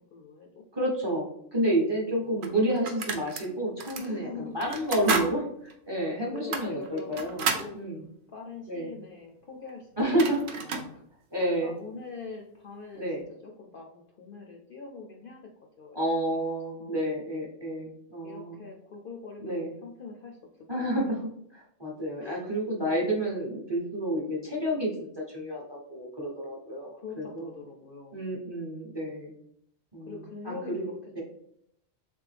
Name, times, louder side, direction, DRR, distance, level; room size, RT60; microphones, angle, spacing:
voice 1, 0.1-0.5 2.1-2.5 3.9-4.6 6.3-7.9 8.3-10.0 10.5-11.1 11.6-15.5 15.8-16.4 16.7-17.1 18.2-20.4 20.7-21.2 22.2-22.5 26.9-28.4 30.0-31.2, left 4 dB, 60° left, 1 dB, 0.6 m, -43 dB
voice 2, 0.7-5.4 5.9-7.5 7.7-8.0 8.7-8.9 10.0-10.4 11.3-11.7 12.9-13.2 15.9-18.6 19.4-19.7 20.7-21.0 21.5-26.9 27.2-27.5 28.1-29.3 29.9-30.1 30.4-30.9 31.2-31.3, right 1 dB, 25° right, -3 dB, 0.8 m, -30 dB
sound 1, 1.7-1.8 2.4-3.5 3.8-4.1 4.6-5.3 5.7-5.8 6.4-7.7 9.7-9.8 10.0-10.9, right 5 dB, 55° right, 0.6 m, -31 dB
3.5 x 3.3 x 3.3 m, 0.72 s
omnidirectional pair, 1.3 m